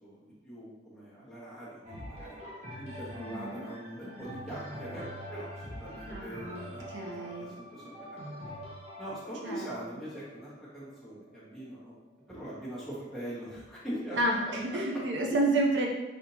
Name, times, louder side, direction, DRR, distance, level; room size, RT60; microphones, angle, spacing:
voice 1, 0.0-2.4 2.8-8.2 9.0-11.9 12.3-14.8, right 1 dB, ahead, -11 dB, 1.4 m, -42 dB
sound 1, 1.8-11.6 12.3-12.4, equal, 40° right, 0.9 m, -44 dB
voice 2, 3.2-3.7 6.1-6.6 6.9-7.5 9.4-9.7 14.1-15.9, right 2 dB, 80° right, 0 dB, 0.6 m, -30 dB
4.2 x 2.8 x 2.8 m, 1.1 s
head